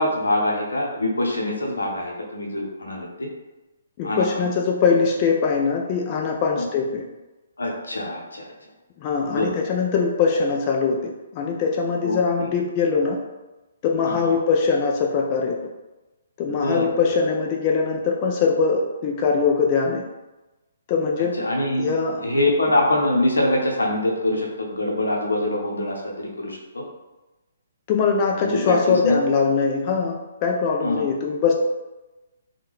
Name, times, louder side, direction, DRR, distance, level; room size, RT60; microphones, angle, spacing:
voice 1, 0.0-3.3 4.0-4.5 6.6-6.7 7.6-8.5 9.2-9.6 12.0-12.5 14.0-14.3 16.6-16.9 21.4-21.9 22.2-26.8 28.3-29.2 30.8-31.1, left 1 dB, 85° left, 0 dB, 0.7 m, -24 dB
voice 2, 4.0-7.0 9.0-13.2 13.8-15.6 16.4-20.0 20.9-21.5 21.8-22.3 22.7-22.8 27.9-30.2 30.4-31.5, left 5 dB, 35° left, 1 dB, 0.4 m, -22 dB
3.4 x 2.2 x 3.0 m, 1.1 s
hypercardioid pair, 140°, 0 cm